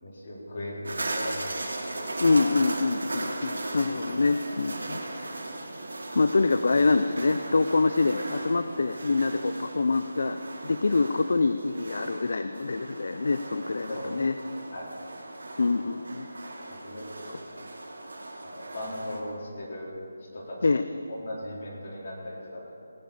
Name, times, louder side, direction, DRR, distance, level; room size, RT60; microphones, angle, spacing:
voice 1, 0.0-1.9 13.9-14.1 14.7-14.9 16.7-17.4 18.4-19.9 20.3-20.7 21.1-22.7, left 1 dB, 45° left, -5 dB, 4.2 m, -38 dB
sound 1, 0.8-19.2, right 2 dB, 80° right, 2.4 m, -38 dB
sound 2, 2.0-10.7, right 1 dB, 20° right, 2.7 m, -50 dB
voice 2, 2.2-5.0 6.1-14.4 15.6-16.3 20.6-20.8, left 3 dB, 60° left, 10 dB, 0.5 m, -25 dB
18.0 x 6.2 x 8.7 m, 2.5 s
figure-of-eight pair, 165°, 0 cm